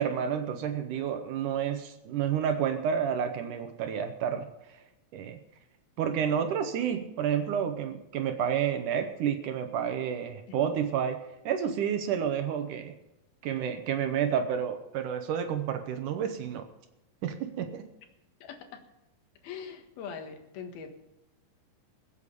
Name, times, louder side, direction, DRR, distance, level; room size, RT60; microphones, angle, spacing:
voice 1, 0.0-4.5 5.1-5.4 6.0-12.9 13.4-16.7 17.2-17.9, right 8 dB, 70° right, 8 dB, 2.3 m, -30 dB
voice 2, 18.4-18.8 19.4-20.9, left 6 dB, 80° left, 6 dB, 3.5 m, -42 dB
21.0 x 8.6 x 5.4 m, 0.91 s
omnidirectional pair, 4.3 m